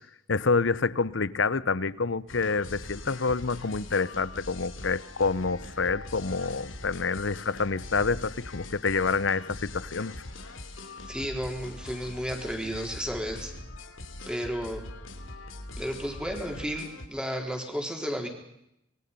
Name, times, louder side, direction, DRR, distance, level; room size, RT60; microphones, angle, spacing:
voice 1, 0.3-10.1, left 4 dB, 70° left, 0.8 m, -27 dB
sound 1, 2.3-17.1, left 2 dB, 90° left, 3.0 m, -42 dB
voice 2, 11.1-13.5 14.3-14.9 15.8-18.3, equal, 5° right, 4.2 m, -33 dB
26.5 x 22.0 x 5.5 m
head